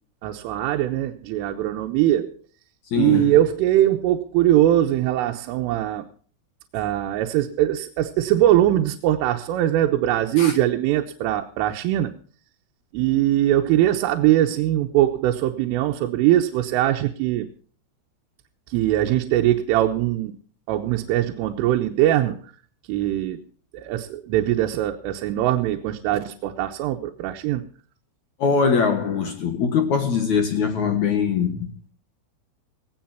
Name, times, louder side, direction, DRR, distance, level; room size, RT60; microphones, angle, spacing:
voice 1, 0.2-2.3 3.0-6.1 6.7-12.1 12.9-17.5 18.7-20.4 20.7-22.4 22.9-23.4 23.7-27.6, right 13 dB, 90° right, 3.5 m, -21 dB
voice 2, 2.9-3.3 10.4-10.6 28.4-31.7, left 6 dB, 65° left, 1.8 m, -22 dB
18.5 x 17.5 x 2.9 m
omnidirectional pair, 5.8 m